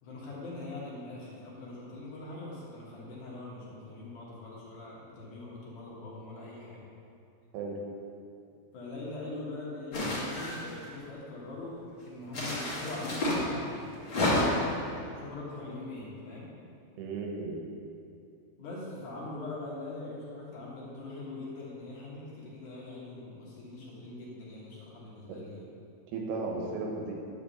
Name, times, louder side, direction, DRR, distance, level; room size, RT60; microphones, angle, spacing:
voice 1, 0.0-6.8 8.7-13.9 15.0-16.5 18.6-25.7, left 2 dB, 60° left, -6 dB, 2.8 m, -42 dB
sound 1, 9.9-10.8 12.3-13.4 14.0-14.7, left 1 dB, 40° left, 2.3 m, -29 dB
voice 2, 17.0-17.7 25.3-25.4 26.1-27.1, right 3 dB, 85° right, 0 dB, 3.2 m, -35 dB
10.5 x 4.8 x 6.9 m, 2.6 s
omnidirectional pair, 4.5 m